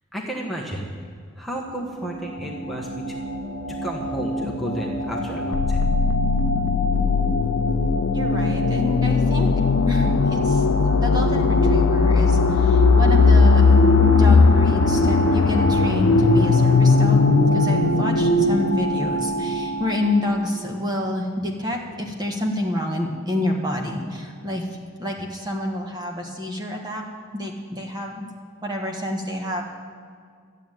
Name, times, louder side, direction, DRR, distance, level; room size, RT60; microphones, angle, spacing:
voice 1, 0.1-0.9 1.3-3.1 3.7-5.9, right 1 dB, ahead, -2 dB, 1.4 m, -32 dB
sound 1, 1.6-20.5, equal, 85° right, 1.6 m, -29 dB
sound 2, 5.5-19.3, left 5 dB, 85° left, 0.4 m, -19 dB
voice 2, 8.1-9.5 9.9-17.3 17.5-24.6 25.0-27.0 27.3-28.3 28.6-29.6, left 1 dB, 20° right, 0 dB, 1.6 m, -28 dB
sound 3, 10.2-20.0 20.5-20.7, right 1 dB, 40° left, 2.1 m, -25 dB
13.5 x 8.2 x 9.2 m, 2.2 s
head